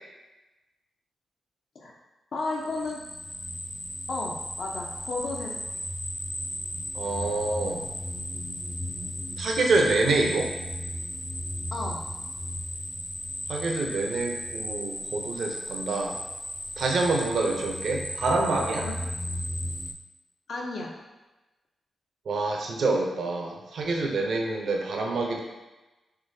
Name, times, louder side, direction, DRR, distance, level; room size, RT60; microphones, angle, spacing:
voice 1, 2.3-3.0 4.1-5.6 11.7-12.0 18.8-19.1 20.5-20.9, left 2 dB, 70° left, -2 dB, 0.5 m, -33 dB
sound 1, 2.6-19.9, equal, 5° left, 0.4 m, -35 dB
voice 2, 6.9-7.9 9.4-10.5 13.5-16.2 16.8-18.9 22.3-25.4, right 3 dB, 75° right, 1 dB, 0.5 m, -26 dB
3.7 x 3.1 x 2.6 m, 1.1 s
cardioid pair, 85°, 0 cm